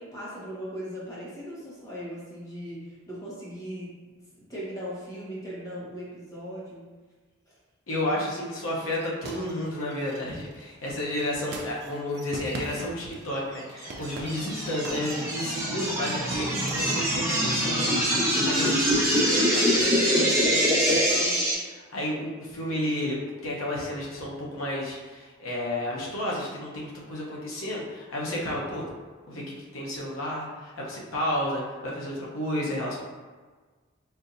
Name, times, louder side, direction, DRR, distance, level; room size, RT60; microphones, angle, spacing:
voice 1, 0.0-6.9, equal, 15° left, -8 dB, 1.0 m, -39 dB
voice 2, 7.9-28.9 29.3-33.0, left 1 dB, 75° left, -4 dB, 0.9 m, -32 dB
sound 1, 8.8-13.4 13.7-15.8 16.1-17.6, right 2 dB, 50° right, 0.4 m, -41 dB
sound 2, 13.8-21.5, equal, 15° right, 1.0 m, -24 dB
4.4 x 2.6 x 2.6 m, 1.4 s
head